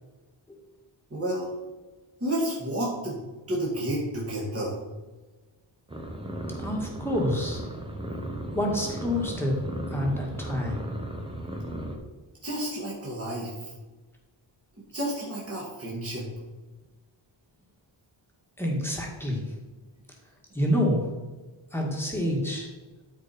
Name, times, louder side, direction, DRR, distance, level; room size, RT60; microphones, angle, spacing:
voice 1, 1.1-1.5 2.2-3.2 3.5-4.8 12.4-13.7 14.9-16.3, right 1 dB, 30° right, -5 dB, 2.3 m, -30 dB
sound 1, 5.9-12.0, right 1 dB, 10° right, 1.1 m, -35 dB
voice 2, 6.6-7.6 8.5-9.6 9.9-10.8 18.6-19.4 20.5-21.1 21.7-22.7, left 1 dB, 5° left, -1 dB, 1.8 m, -27 dB
12.5 x 4.9 x 4.4 m, 1.2 s
wide cardioid pair, 165°, 49 cm